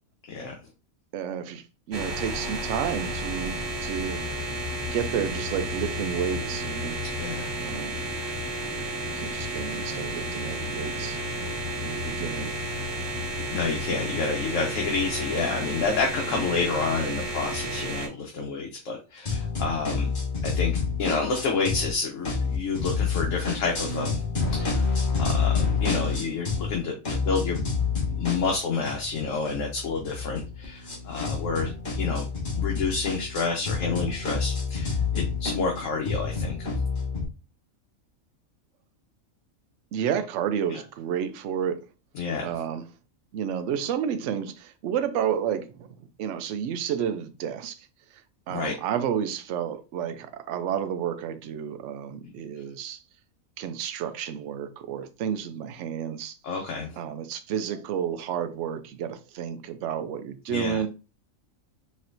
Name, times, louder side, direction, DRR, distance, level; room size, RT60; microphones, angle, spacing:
voice 1, 1.1-4.3 4.9-7.0 7.6-7.9 9.1-11.2 11.8-12.5 39.9-41.8 42.4-42.8 43.3-47.9 48.5-53.0 53.6-56.4 57.0-60.9, right 8 dB, 65° right, 0.8 m, -31 dB
sound 1, 1.9-18.1, equal, 40° right, 0.3 m, -32 dB
voice 2, 7.1-7.5 13.5-20.1 20.4-24.2 24.5-24.8 25.2-31.7 32.0-32.2 32.6-36.7 40.7-40.8 42.1-42.4 48.5-48.7 56.4-57.0 60.5-60.8, left 4 dB, 65° left, 1.1 m, -29 dB
sound 2, 19.3-21.9 22.2-26.8 27.0-37.3, left 5 dB, 40° left, 1.3 m, -28 dB
4.2 x 3.1 x 2.5 m
omnidirectional pair, 1.5 m